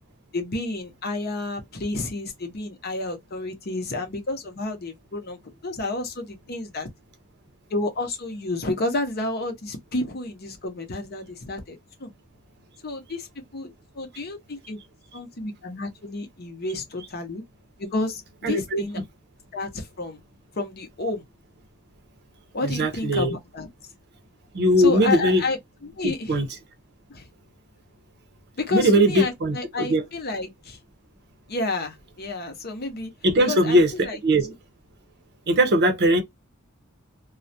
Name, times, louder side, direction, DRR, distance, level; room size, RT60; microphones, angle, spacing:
voice 1, 0.3-6.9 7.7-12.1 12.8-13.3 13.5-14.8 15.1-17.4 17.8-19.0 19.5-20.2 20.5-21.2 22.5-23.7 24.8-26.4 27.1-27.3 28.6-30.8 31.5-33.1 33.4-34.5, left 2 dB, 45° left, 0.7 m, -31 dB
voice 2, 18.4-18.8 22.6-23.3 24.5-25.4 26.0-26.5 28.7-30.0 33.2-34.5 35.5-36.2, equal, 50° right, 0.6 m, -20 dB
2.3 x 2.1 x 2.6 m
head